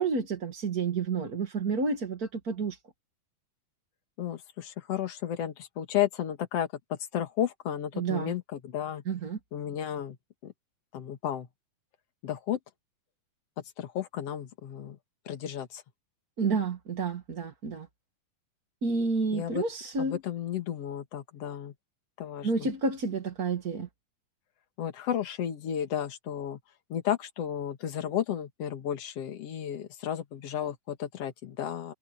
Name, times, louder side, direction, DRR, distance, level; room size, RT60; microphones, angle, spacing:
voice 1, 0.0-2.8 7.9-8.3 9.0-9.4 16.4-17.9 18.8-20.2 22.4-23.9, right 4 dB, 45° right, 1.3 m, -30 dB
voice 2, 4.2-9.0 9.5-10.2 10.4-10.5 10.9-11.5 12.2-12.6 13.8-15.0 15.3-15.8 19.3-19.6 20.0-21.7 22.2-22.7 24.8-26.6 26.9-31.9, left 10 dB, 50° left, 2.1 m, -33 dB
omnidirectional pair, 4.4 m